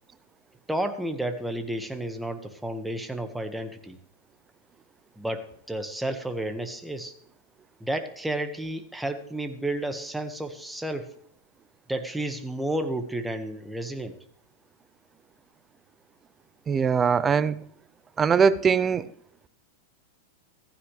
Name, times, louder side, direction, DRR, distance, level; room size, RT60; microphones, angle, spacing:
voice 1, 0.7-4.0 5.2-7.1 7.8-11.1 11.9-14.1, right 1 dB, 5° right, 1.6 m, -31 dB
voice 2, 16.7-17.6 18.2-19.1, right 6 dB, 20° right, 0.6 m, -21 dB
15.5 x 15.0 x 3.4 m
hypercardioid pair, 115°, 0 cm